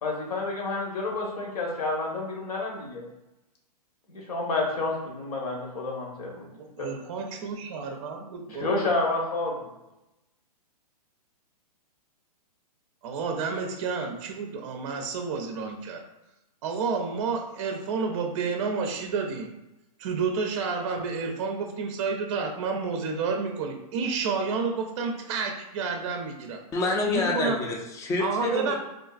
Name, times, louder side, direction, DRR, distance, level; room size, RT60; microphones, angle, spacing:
voice 1, 0.0-3.0 4.1-6.4 6.8-6.9 8.5-9.7, left 2 dB, 70° left, -1 dB, 1.1 m, -29 dB
voice 2, 6.6-8.7 13.0-16.0 16.6-19.5 20.0-26.6 27.1-27.6 28.2-28.7, right 5 dB, 50° right, 4 dB, 0.5 m, -30 dB
voice 3, 26.7-28.7, left 3 dB, 15° left, 0 dB, 0.5 m, -27 dB
3.5 x 2.4 x 2.3 m, 0.95 s
hypercardioid pair, 130°, 20 cm